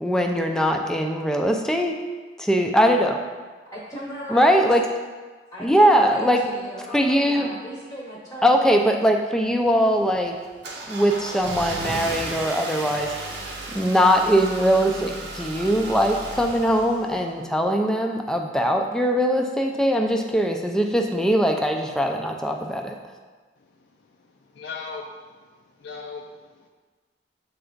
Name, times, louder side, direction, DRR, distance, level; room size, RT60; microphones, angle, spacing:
voice 1, 0.0-2.0 2.4-3.2 4.3-4.8 5.6-6.4 6.9-7.5 8.4-10.4 10.9-13.4 13.7-22.9, equal, 5° left, 3 dB, 0.4 m, -21 dB
voice 2, 3.7-4.6 5.5-8.9, equal, 20° left, -5 dB, 0.8 m, -36 dB
Car / Engine starting, 9.4-17.6, right 2 dB, 70° right, 0.7 m, -35 dB
voice 3, 24.6-25.3 25.8-26.7, left 4 dB, 75° left, 1 dB, 0.4 m, -38 dB
7.9 x 3.3 x 3.9 m, 1.4 s
head